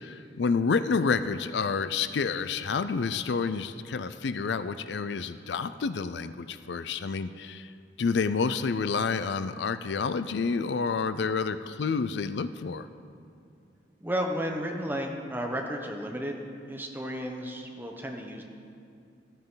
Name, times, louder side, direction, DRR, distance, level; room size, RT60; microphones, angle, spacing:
voice 1, 0.0-7.7 8.0-12.9, left 5 dB, 70° left, 12 dB, 0.4 m, -29 dB
voice 2, 14.0-16.4 16.7-18.4, equal, 10° right, 2 dB, 1.1 m, -33 dB
14.0 x 14.0 x 3.9 m, 2.4 s
head